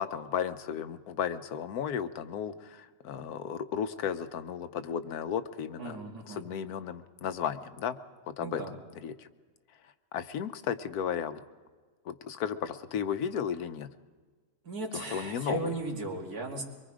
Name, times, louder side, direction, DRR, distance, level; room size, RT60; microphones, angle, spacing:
voice 1, 0.0-6.0 6.3-8.0 8.4-8.6 9.0-9.3 10.1-11.4 12.1-13.9 14.9-15.7, left 8 dB, 85° left, 11 dB, 1.3 m, -34 dB
voice 2, 5.8-6.4 8.4-8.7 14.6-16.6, right 2 dB, 85° right, 0 dB, 2.9 m, -36 dB
23.5 x 23.0 x 5.0 m, 1.4 s
omnidirectional pair, 1.6 m